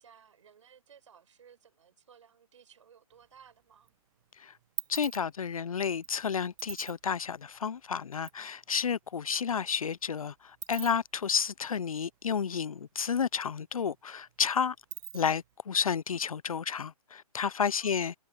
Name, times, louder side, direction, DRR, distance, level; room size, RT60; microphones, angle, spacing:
voice 1, 0.0-3.9 9.2-9.4 17.8-18.1, right 7 dB, 55° right, 6.0 m, -58 dB
sound 1, 3.1-3.9 4.2-8.4 8.7-8.8 9.0-12.9 13.2-13.3 13.6-15.5, right 16 dB, 30° right, 1.8 m, -45 dB
voice 2, 4.9-10.3 10.7-14.7 15.1-18.1, left 7 dB, 65° left, 0.8 m, -31 dB
figure-of-eight pair, 140°, 20 cm